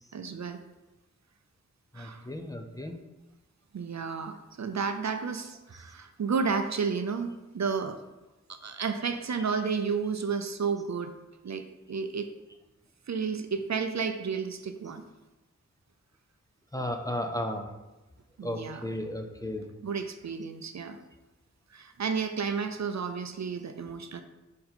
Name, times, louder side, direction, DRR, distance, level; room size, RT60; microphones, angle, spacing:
voice 1, 0.1-0.6 1.9-2.2 3.7-8.0 8.5-11.1 11.4-12.3 13.1-15.0 18.4-18.9 19.8-21.0 21.7-24.2, right 5 dB, 60° right, 7 dB, 0.5 m, -32 dB
voice 2, 1.9-3.0 16.7-17.7 18.4-19.7, left 1 dB, 10° left, 4 dB, 0.5 m, -34 dB
5.2 x 4.2 x 4.3 m, 1.0 s
wide cardioid pair, 70°, 31 cm